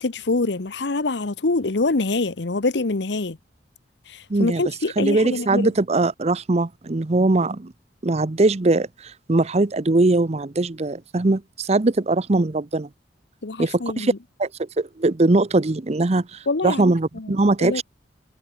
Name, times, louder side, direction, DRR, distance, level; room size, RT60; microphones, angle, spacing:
voice 1, 0.0-3.4 4.1-5.6 13.4-14.2 16.5-17.3 17.6-17.8, left 3 dB, 70° left, 1.0 m, -25 dB
voice 2, 4.3-4.6 5.0-7.7 8.0-12.9 13.6-14.1 14.4-17.8, right 2 dB, 35° right, 0.7 m, -21 dB
head